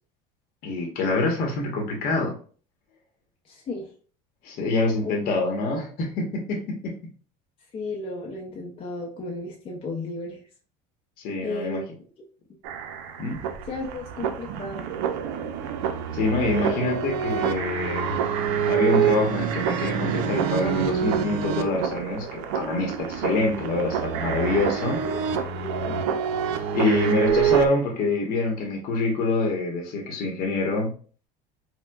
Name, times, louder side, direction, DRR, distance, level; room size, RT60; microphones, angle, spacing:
voice 1, 0.6-2.4 4.4-6.9 11.2-11.8 13.2-13.4 16.1-18.1 18.6-25.0 26.7-30.9, left 3 dB, 55° left, 1 dB, 0.9 m, -26 dB
voice 2, 3.4-3.9 5.0-5.3 7.7-10.4 11.4-11.8 13.7-14.9 16.6-17.0 25.0-25.2 25.6-26.0, left 2 dB, 30° left, -1 dB, 0.6 m, -34 dB
heart of the universe, 12.6-27.7, right 8 dB, 75° right, 0.5 m, -26 dB
4.4 x 2.2 x 2.3 m, 0.41 s
cardioid pair, 125°, 18 cm